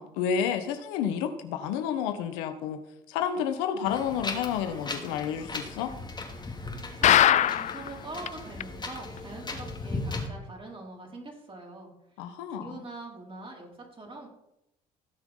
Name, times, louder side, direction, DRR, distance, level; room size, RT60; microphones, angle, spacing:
voice 1, 0.0-2.8 3.1-5.9 12.2-12.8, left 8 dB, 75° left, 8 dB, 1.2 m, -30 dB
Wind, 3.9-10.3, left 2 dB, 20° left, 2.9 m, -37 dB
voice 2, 6.9-11.9 12.6-14.3, right 2 dB, 25° right, 0 dB, 4.9 m, -43 dB
sound 1, 7.0-7.9 8.3-8.4 8.6-8.7 9.2-9.3, left 11 dB, 40° left, 0.4 m, -20 dB
17.0 x 6.1 x 5.5 m, 0.84 s
hypercardioid pair, 60°, 19 cm